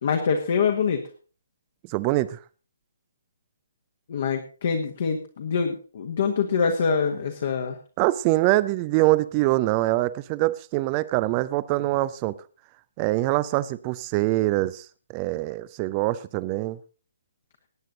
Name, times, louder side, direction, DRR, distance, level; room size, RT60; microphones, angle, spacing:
voice 1, 0.0-1.0 4.1-7.8, left 6 dB, 45° left, 4 dB, 1.6 m, -25 dB
voice 2, 1.9-2.4 8.0-12.3 13.0-14.8 15.1-16.8, right 18 dB, 25° right, 18 dB, 0.6 m, -24 dB
19.0 x 9.3 x 3.9 m, 0.37 s
figure-of-eight pair, 135°, 0 cm